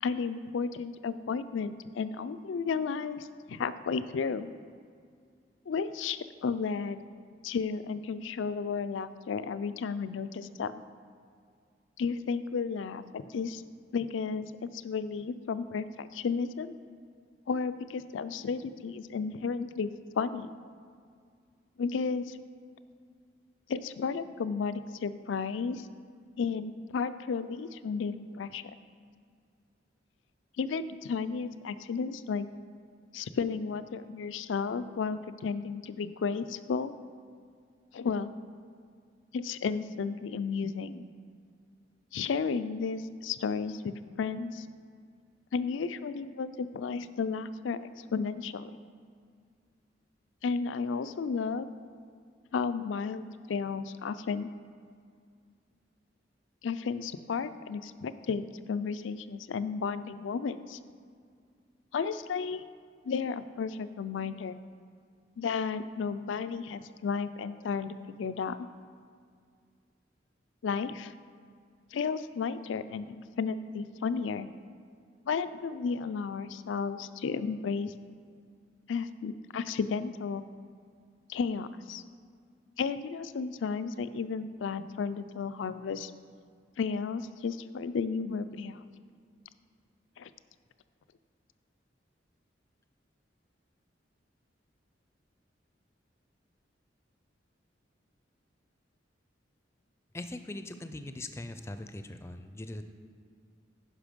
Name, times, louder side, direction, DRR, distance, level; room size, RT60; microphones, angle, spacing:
voice 1, 0.0-4.5 5.7-7.0 7.4-10.7 12.0-13.6 13.9-16.7 17.5-20.5 21.8-22.4 23.7-25.9 26.4-28.6 30.6-32.5 33.1-36.9 37.9-38.3 39.3-41.0 42.1-44.7 45.5-48.7 50.4-51.7 52.5-54.5 56.6-60.8 61.9-62.6 63.1-64.6 65.4-68.7 70.6-71.1 71.9-74.5 75.3-77.9 78.9-80.4 81.3-82.0 82.8-86.1 86.8-88.8 90.2-90.3, left 5 dB, 90° left, 13 dB, 0.4 m, -33 dB
voice 2, 100.1-102.8, left 2 dB, 15° left, 9 dB, 0.4 m, -41 dB
9.9 x 5.8 x 5.2 m, 2.2 s
head